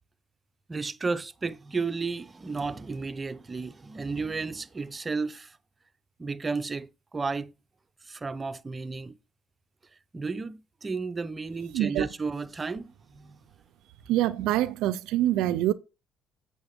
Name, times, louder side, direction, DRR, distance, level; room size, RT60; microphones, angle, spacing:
voice 1, 0.7-5.6 6.2-7.5 8.1-9.2 10.1-13.4, right 4 dB, 25° right, 0.6 m, -33 dB
voice 2, 11.7-12.1 14.1-15.7, right 14 dB, 85° right, 0.4 m, -25 dB
7.9 x 6.4 x 3.6 m
cardioid pair, 95°, 0 cm